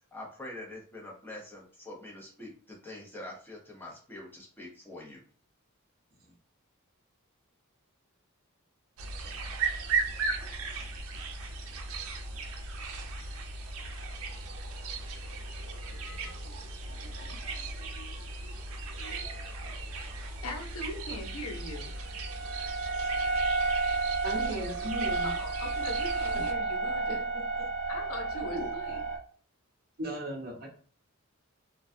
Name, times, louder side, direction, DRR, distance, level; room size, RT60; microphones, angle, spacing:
voice 1, 0.1-5.2, left 1 dB, 10° left, -3 dB, 0.7 m, -45 dB
sound 1, 9.0-26.5, right 3 dB, 75° right, 0.4 m, -37 dB
sound 2, 16.1-16.3 17.2-17.5 17.8-18.4 19.0-19.5 21.4-29.2, right 3 dB, 55° left, 0.8 m, -32 dB
voice 2, 20.4-21.9 24.8-24.9 25.2-27.2 27.9-29.0, left 1 dB, 90° left, 1 dB, 0.7 m, -40 dB
voice 3, 24.2-25.3 27.1-27.7 28.5-28.7 30.0-30.7, equal, 45° right, 0 dB, 0.7 m, -37 dB
2.3 x 2.2 x 2.6 m, 0.42 s
head